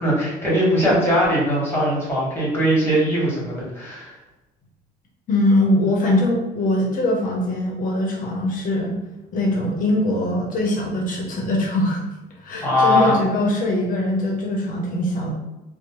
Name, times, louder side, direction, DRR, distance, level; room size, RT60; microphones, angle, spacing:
voice 1, 0.0-4.1 12.6-13.2, equal, 15° left, -6 dB, 1.3 m, -20 dB
voice 2, 5.3-8.9 9.3-12.0 12.4-15.3, left 1 dB, 55° left, -1 dB, 0.6 m, -22 dB
2.6 x 2.0 x 2.9 m, 1.0 s
cardioid pair, 110°, 17 cm